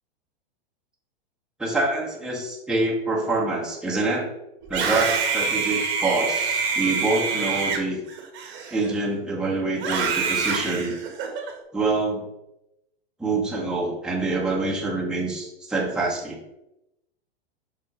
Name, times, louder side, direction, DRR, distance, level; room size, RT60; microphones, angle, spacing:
voice 1, 1.6-4.3 4.7-8.0 8.7-11.0 11.7-12.3 13.2-16.4, right 2 dB, ahead, -4 dB, 1.5 m, -26 dB
Screaming, 4.6-9.1 9.8-11.5, right 5 dB, 35° right, 1.6 m, -26 dB
5.5 x 4.3 x 4.8 m, 0.89 s
hypercardioid pair, 125°, 32 cm